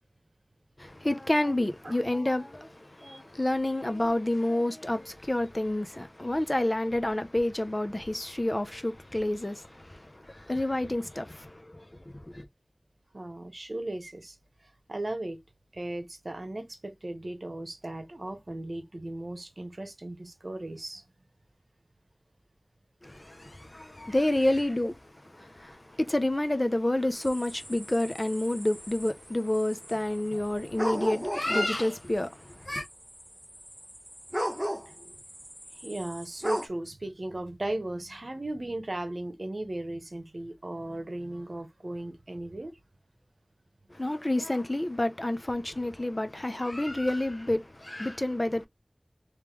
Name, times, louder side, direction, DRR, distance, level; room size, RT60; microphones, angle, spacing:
voice 1, 0.8-12.5 23.0-24.9 25.4-32.9 43.9-48.7, left 1 dB, 40° left, 0.7 m, -29 dB
voice 2, 13.1-14.4 14.6-15.4 15.7-21.0 35.7-42.8, right 1 dB, 70° right, 1.0 m, -37 dB
sound 1, 27.1-31.9 32.5-32.6 32.8-36.7, equal, 5° right, 0.6 m, -37 dB
3.5 x 3.2 x 3.2 m
wide cardioid pair, 40°, 0 cm